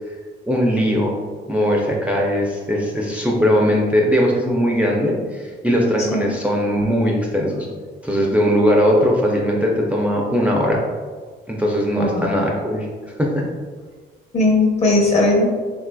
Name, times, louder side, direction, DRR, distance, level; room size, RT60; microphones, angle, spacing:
voice 1, 0.4-1.1 1.5-7.7 8.0-10.8 11.5-12.9 13.2-13.5, equal, 5° right, -2 dB, 0.4 m, -19 dB
voice 2, 6.0-6.3 11.9-12.3 14.3-15.5, left 2 dB, 30° left, -1 dB, 0.8 m, -18 dB
3.7 x 2.5 x 2.2 m, 1.5 s
cardioid pair, 90°, 20 cm